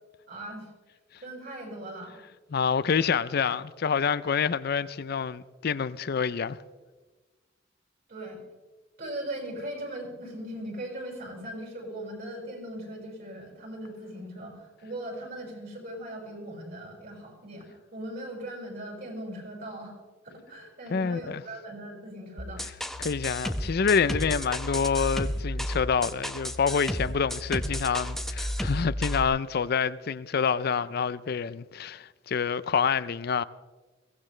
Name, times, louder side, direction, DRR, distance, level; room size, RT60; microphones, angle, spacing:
voice 1, 0.3-0.7 1.2-2.2 8.1-8.4 9.0-19.9 20.2-22.7, right 1 dB, 55° right, 6.1 m, -39 dB
voice 2, 2.5-6.6 20.9-21.4 23.0-33.4, left 6 dB, 55° left, 0.5 m, -27 dB
sound 1, 22.4-29.2, equal, ahead, 0.8 m, -32 dB
22.5 x 17.0 x 3.3 m
head